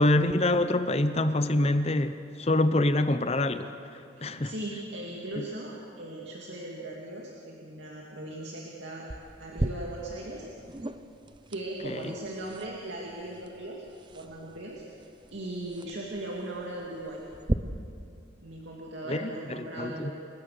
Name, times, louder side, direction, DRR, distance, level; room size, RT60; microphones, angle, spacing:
voice 1, 0.0-3.7 4.2-4.5 5.4-5.5 11.8-12.0 19.1-20.1, left 1 dB, 35° left, 10 dB, 0.7 m, -25 dB
voice 2, 4.1-9.1 9.4-10.4 11.5-13.9 14.1-14.8 15.3-17.2 18.4-20.1, right 1 dB, 75° right, -3 dB, 2.5 m, -38 dB
sound 1, 9.1-17.5, right 1 dB, 25° right, 0.7 m, -38 dB
29.5 x 16.5 x 6.7 m, 2.6 s
head